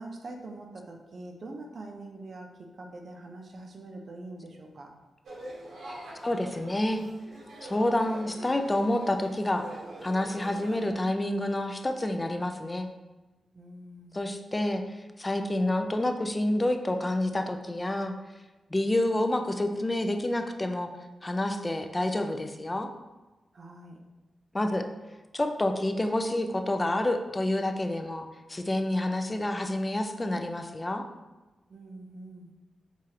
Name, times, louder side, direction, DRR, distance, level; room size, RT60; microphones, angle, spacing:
voice 1, 0.0-2.5 2.8-4.9 13.5-14.4 23.5-24.0 31.7-32.5, right 2 dB, 50° right, 2 dB, 0.5 m, -44 dB
sound 1, 5.2-10.9, right 1 dB, 80° right, 0.8 m, -44 dB
voice 2, 6.2-7.0 7.6-9.7 10.0-12.9 14.1-14.8 15.2-18.1 18.7-20.9 21.2-22.9 24.5-24.9 25.3-31.0, left 1 dB, 20° left, 7 dB, 0.3 m, -28 dB
4.7 x 2.4 x 2.8 m, 1.1 s
wide cardioid pair, 115°, 0 cm